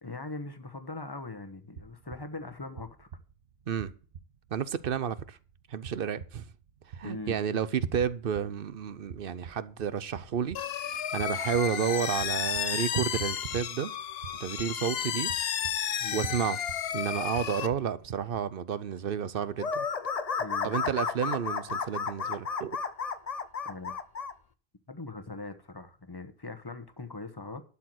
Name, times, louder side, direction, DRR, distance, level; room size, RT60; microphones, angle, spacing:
voice 1, 0.0-3.1 7.0-7.4 16.0-16.3 20.4-20.7 23.6-24.0 24.9-27.6, left 2 dB, 25° left, 1.1 m, -41 dB
sound 1, 1.8-18.4, right 6 dB, 85° right, 1.2 m, -49 dB
voice 2, 4.5-5.4 5.7-6.5 6.9-10.6 11.1-13.9 14.4-15.3 16.1-16.6 16.9-19.9 20.6-22.8, right 8 dB, 65° right, 0.9 m, -31 dB
sound 2, 10.5-17.7, left 9 dB, 75° left, 1.0 m, -32 dB
sound 3, 19.6-24.3, left 5 dB, 40° left, 0.7 m, -32 dB
12.0 x 4.7 x 7.7 m
omnidirectional pair, 1.0 m